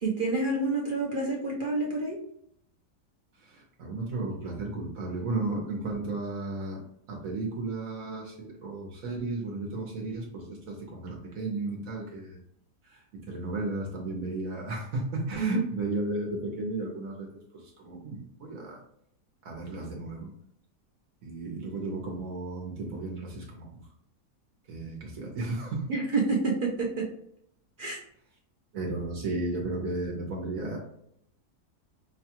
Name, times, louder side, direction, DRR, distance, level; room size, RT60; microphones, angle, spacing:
voice 1, 0.0-2.2 15.4-15.5 25.9-27.0 27.8-28.0, right 3 dB, 50° right, -3 dB, 0.6 m, -28 dB
voice 2, 3.4-6.8 7.1-12.4 12.8-17.3 17.5-18.8 19.4-20.3 21.2-23.8 24.7-25.8 28.7-30.8, right 2 dB, 65° right, 0 dB, 1.2 m, -34 dB
5.6 x 2.3 x 2.9 m, 0.71 s
omnidirectional pair, 1.7 m